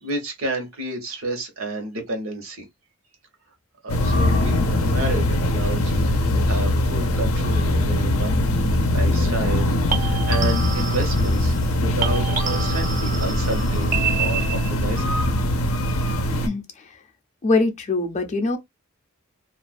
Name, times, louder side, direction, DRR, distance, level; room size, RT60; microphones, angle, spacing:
voice 1, 0.0-2.7 3.8-15.2, right 2 dB, 75° right, 1.0 m, -31 dB
sound 1, 3.9-16.5, left 1 dB, 85° left, 0.5 m, -21 dB
sound 2, 4.9-5.2 9.9-11.7 12.0-14.9, right 6 dB, 40° right, 0.5 m, -29 dB
voice 2, 16.3-16.9 17.4-18.6, left 3 dB, 35° left, 0.5 m, -23 dB
2.4 x 2.1 x 2.4 m
head